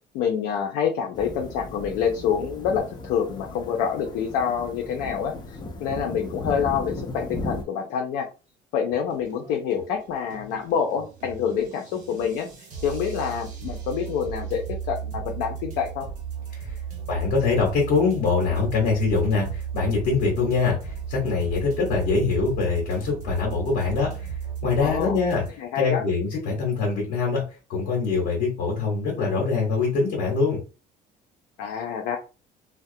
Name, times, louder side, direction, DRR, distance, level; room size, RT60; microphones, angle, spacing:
voice 1, 0.1-8.3 8.7-12.5 12.8-16.1 24.8-25.2 25.6-26.0 31.6-32.2, left 7 dB, 85° left, 2 dB, 0.5 m, -27 dB
sound 1, 1.1-7.6, left 1 dB, 25° left, 0.5 m, -36 dB
sound 2, 8.9-25.5, right 7 dB, 55° right, 1.0 m, -35 dB
voice 2, 17.1-24.3 24.6-25.4 25.8-30.6, left 4 dB, 60° left, -2 dB, 1.1 m, -24 dB
2.3 x 2.0 x 2.6 m, 0.32 s
cardioid pair, 125°, 16 cm